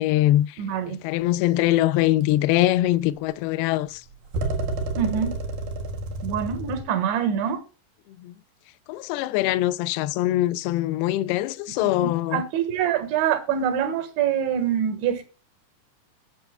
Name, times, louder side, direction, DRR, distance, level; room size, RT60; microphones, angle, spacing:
voice 1, 0.0-4.1 8.2-8.3 8.9-12.4, left 15 dB, 90° left, 2.2 m, -23 dB
voice 2, 0.6-1.0 5.0-5.4 6.2-7.6 11.8-15.2, right 8 dB, 85° right, 3.9 m, -25 dB
sound 1, 2.3-2.4 4.3-6.8, right 2 dB, 60° right, 3.1 m, -29 dB
20.0 x 6.9 x 2.2 m
omnidirectional pair, 5.1 m